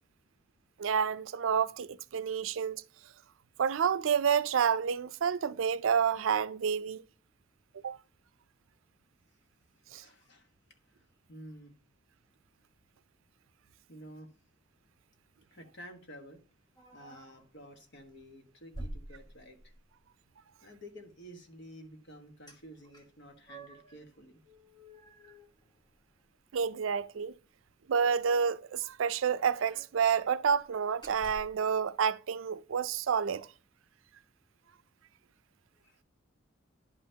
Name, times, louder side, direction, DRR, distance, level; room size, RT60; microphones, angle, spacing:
voice 1, 0.8-2.8 3.6-7.0 7.8-8.0 9.9-10.0 26.5-27.3 27.9-33.5, right 7 dB, 85° right, 0.4 m, -29 dB
voice 2, 10.0-10.5 11.0-11.7 13.9-14.3 15.5-16.4 16.9-19.6 20.6-24.4 35.7-36.0, equal, 60° left, 1.4 m, -51 dB
sound 1, 16.8-17.5 18.0-18.2 18.7-19.9 22.5-22.6 22.9-24.0 24.4-26.2 26.5-26.6 27.0-27.2 28.3-28.4 28.6-28.7 29.1-30.0 30.5-30.6 31.0-31.6, right 1 dB, 20° left, 1.2 m, -49 dB
10.5 x 5.6 x 2.8 m
head